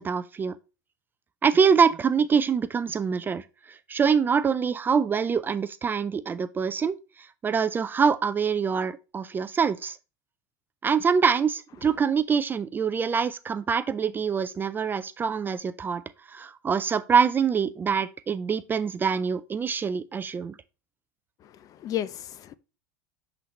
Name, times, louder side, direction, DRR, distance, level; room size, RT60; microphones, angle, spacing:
voice 1, 0.0-0.6 1.4-7.0 7.4-10.0 10.8-16.0 16.3-20.6, right 6 dB, 20° right, 0.4 m, -25 dB
voice 2, 21.4-22.6, left 12 dB, 40° left, 0.6 m, -33 dB
9.2 x 3.9 x 3.0 m
hypercardioid pair, 105°, 10 cm